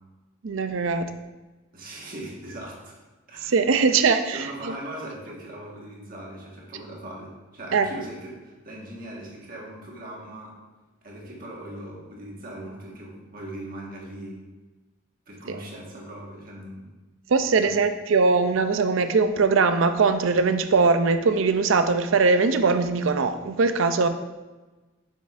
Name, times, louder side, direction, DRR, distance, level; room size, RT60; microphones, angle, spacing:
voice 1, 0.4-1.1 3.4-4.7 7.7-7.9 15.5-15.6 17.3-24.1, right 4 dB, 70° right, 9 dB, 0.5 m, -21 dB
voice 2, 1.7-3.0 3.3-3.5 3.9-4.0 4.3-10.6 11.0-14.4 15.3-16.9 17.4-17.7, right 1 dB, 45° right, -3 dB, 1.5 m, -39 dB
7.0 x 6.4 x 2.5 m, 1.2 s
head